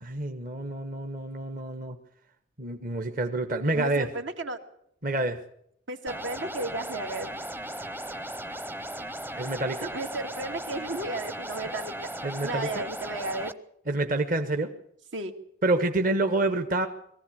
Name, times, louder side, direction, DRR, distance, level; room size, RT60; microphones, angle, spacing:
voice 1, 0.0-2.0 2.6-4.1 5.0-5.4 9.3-9.9 12.2-12.8 13.9-14.7 15.6-16.9, right 2 dB, 45° right, 6 dB, 1.3 m, -28 dB
voice 2, 3.7-4.6 5.9-7.3 9.9-11.9 12.4-13.5 15.1-15.3, right 2 dB, 75° right, 6 dB, 2.2 m, -34 dB
sound 1, 6.1-13.5, right 1 dB, 10° right, 0.7 m, -37 dB
21.5 x 15.0 x 8.6 m, 0.70 s
head